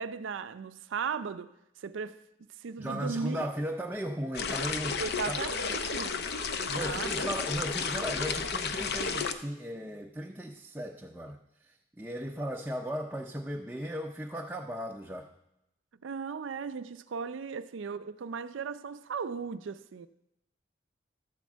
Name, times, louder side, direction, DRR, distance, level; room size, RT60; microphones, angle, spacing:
voice 1, 0.0-1.5 1.8-2.2 2.6-3.5 5.0-6.3 6.6-7.3 16.0-20.1, right 5 dB, 85° right, 0.4 m, -37 dB
voice 2, 2.8-5.0 5.3-5.4 6.7-11.4 11.7-15.3, equal, 10° right, 0.5 m, -36 dB
sound 1, 4.3-9.3, left 5 dB, 55° left, 0.6 m, -32 dB
12.5 x 4.4 x 7.3 m
head